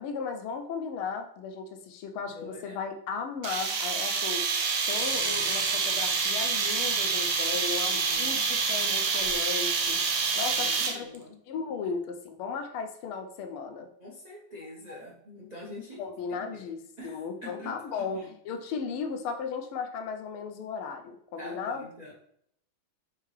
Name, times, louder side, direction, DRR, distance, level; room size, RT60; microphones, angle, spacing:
voice 1, 0.0-4.5 4.9-10.0 10.4-13.9 16.0-18.2 18.5-21.9, left 5 dB, 85° left, 6 dB, 1.5 m, -36 dB
voice 2, 2.3-2.8 7.5-8.4 10.5-11.4 14.0-16.0 16.4-16.6 17.0-18.3 21.4-22.1, left 1 dB, 50° right, -5 dB, 0.4 m, -45 dB
sound 1, 3.4-11.2, right 5 dB, 90° right, 0.7 m, -27 dB
4.6 x 3.6 x 3.2 m, 0.68 s
omnidirectional pair, 2.4 m